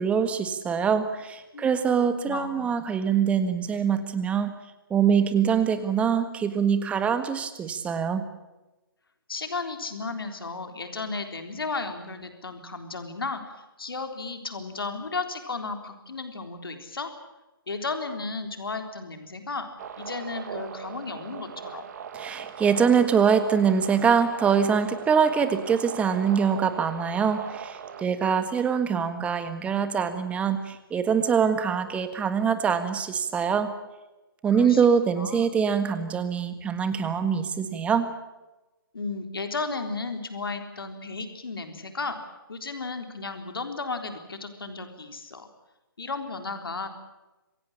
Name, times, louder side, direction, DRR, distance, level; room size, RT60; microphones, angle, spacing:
voice 1, 0.0-4.5 4.9-8.2 22.1-33.7 34.4-38.1, right 7 dB, 10° right, 10 dB, 1.7 m, -24 dB
voice 2, 2.0-2.8 9.3-17.1 17.7-19.7 20.0-21.9 34.5-34.9 35.2-35.5 38.9-42.2 42.5-45.5 46.0-46.9, left 3 dB, 75° left, 6 dB, 3.8 m, -34 dB
sound 1, 19.8-28.0, right 8 dB, 45° right, 2.2 m, -40 dB
26.5 x 16.5 x 8.8 m, 1.1 s
figure-of-eight pair, 140°, 12 cm